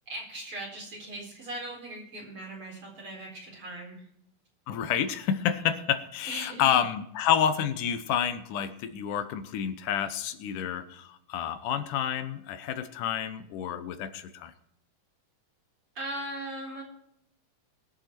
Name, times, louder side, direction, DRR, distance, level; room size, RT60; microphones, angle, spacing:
voice 1, 0.1-4.0 6.3-6.7 15.9-16.8, right 1 dB, 45° right, -1 dB, 5.0 m, -39 dB
voice 2, 4.7-14.5, left 9 dB, 85° left, 10 dB, 2.6 m, -29 dB
22.0 x 7.5 x 4.4 m, 0.76 s
omnidirectional pair, 3.6 m